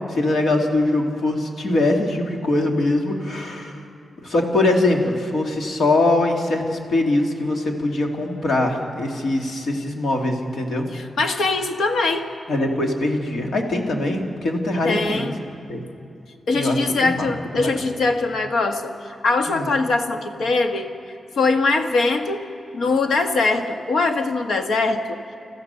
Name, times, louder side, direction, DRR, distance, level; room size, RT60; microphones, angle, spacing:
voice 1, 0.1-3.9 4.2-10.9 12.5-15.3 15.7-15.9 16.5-17.8 19.5-19.7, left 2 dB, 55° left, 2 dB, 2.3 m, -22 dB
voice 2, 10.9-12.3 14.8-15.4 16.5-18.9 19.2-20.9 21.4-22.4 22.7-25.2, left 3 dB, 75° left, 6 dB, 1.4 m, -22 dB
29.0 x 14.5 x 6.9 m, 2.5 s
wide cardioid pair, 175°, 0 cm